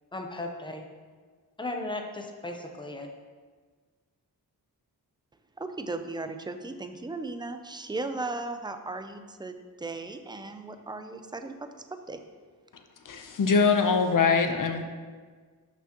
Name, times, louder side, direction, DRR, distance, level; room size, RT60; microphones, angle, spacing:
voice 1, 0.1-0.8 1.6-3.1, left 2 dB, 10° left, 3 dB, 0.7 m, -36 dB
voice 2, 5.6-11.5 11.9-12.2, right 3 dB, 10° right, 8 dB, 0.4 m, -36 dB
voice 3, 13.0-14.8, left 5 dB, 55° left, 6 dB, 0.8 m, -23 dB
12.5 x 6.0 x 2.9 m, 1.5 s
wide cardioid pair, 160°, 39 cm